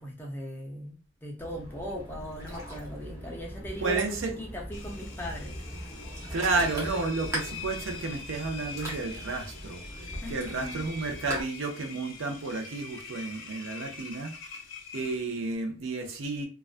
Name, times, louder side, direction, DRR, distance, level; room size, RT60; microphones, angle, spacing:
voice 1, 0.0-5.8 10.2-11.1, equal, 10° left, 0.4 m, -39 dB
Ocean, 1.4-11.4, equal, 15° right, 0.7 m, -40 dB
voice 2, 3.8-4.3 6.3-14.3 14.9-16.5, right 3 dB, 60° right, 0.5 m, -31 dB
Engine, 4.7-15.6, left 5 dB, 65° left, 0.5 m, -44 dB
2.3 x 2.2 x 2.4 m
head